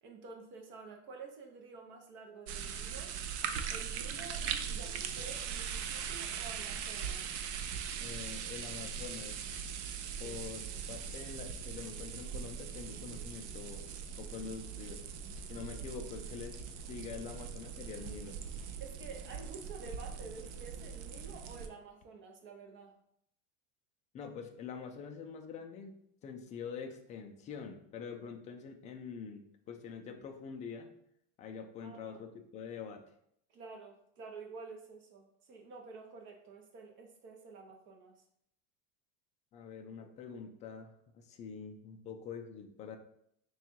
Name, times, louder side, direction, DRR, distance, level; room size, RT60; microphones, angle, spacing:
voice 1, 0.0-3.1 3.7-7.4 10.2-10.4 18.8-22.9 31.8-32.2 33.5-38.2, right 4 dB, 35° right, 2 dB, 0.7 m, -50 dB
sound 1, 2.5-21.7, right 7 dB, 90° right, 0.5 m, -40 dB
voice 2, 8.0-9.4 10.2-13.9 14.2-15.0 15.5-18.4 24.1-25.9 26.2-30.9 31.4-33.0 39.5-43.0, left 6 dB, 25° left, 3 dB, 0.3 m, -45 dB
3.6 x 2.3 x 4.4 m, 0.71 s
supercardioid pair, 155°, 33 cm